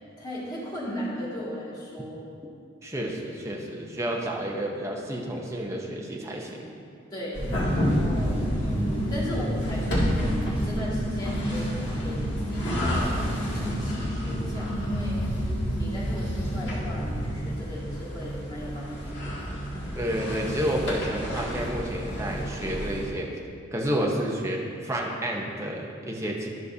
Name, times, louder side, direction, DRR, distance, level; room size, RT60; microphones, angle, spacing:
voice 1, 0.2-2.2 7.1-13.2 13.5-15.2 15.8-19.4 23.9-24.1, equal, 20° left, -7 dB, 1.9 m, -37 dB
voice 2, 2.8-6.6 19.9-23.3 23.7-26.5, equal, 15° right, -1 dB, 0.7 m, -30 dB
sound 1, 7.3-23.1, equal, 60° left, 2.0 m, -31 dB
sound 2, 7.4-17.4, equal, ahead, 1.9 m, -30 dB
12.5 x 6.4 x 2.7 m, 2.3 s
head